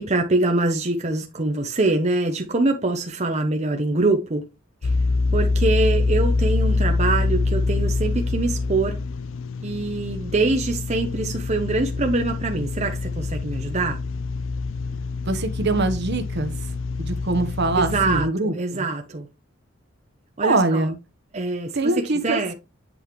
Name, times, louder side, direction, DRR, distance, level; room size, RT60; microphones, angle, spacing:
voice 1, 0.0-4.5 4.8-4.9 5.3-9.0 9.6-14.0 17.8-19.3 20.4-20.9 21.3-22.5, right 2 dB, 35° right, 0.9 m, -24 dB
sound 1, 4.8-18.3, left 3 dB, 75° left, 0.5 m, -25 dB
voice 2, 15.3-16.5 17.0-18.9 20.4-21.0 21.7-22.5, right 2 dB, 60° right, 1.1 m, -23 dB
8.1 x 5.4 x 3.1 m
head